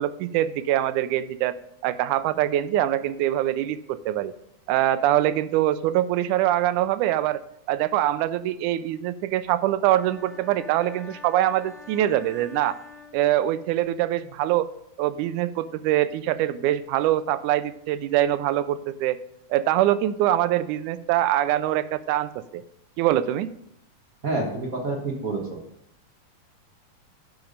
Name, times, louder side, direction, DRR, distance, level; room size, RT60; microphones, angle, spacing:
voice 1, 0.0-1.6 1.8-4.3 4.7-7.4 7.7-12.8 13.1-14.7 15.0-19.2 19.5-22.6 23.0-23.5, right 13 dB, 90° right, 14 dB, 2.0 m, -24 dB
sound 1, 9.9-13.8, left 3 dB, 65° right, 3.4 m, -47 dB
voice 2, 24.2-25.6, right 2 dB, 45° right, 0 dB, 1.1 m, -28 dB
10.5 x 5.9 x 5.2 m, 0.76 s
omnidirectional pair, 3.5 m